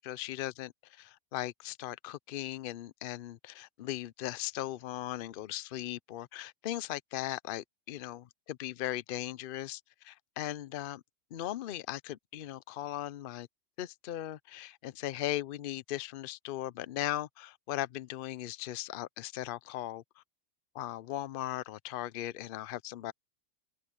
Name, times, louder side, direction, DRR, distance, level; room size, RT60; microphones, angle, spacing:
voice 1, 0.0-11.0 11.3-13.5 13.8-20.2 20.7-23.1, left 14 dB, 55° left, 0.6 m, -38 dB
omnidirectional pair, 1.4 m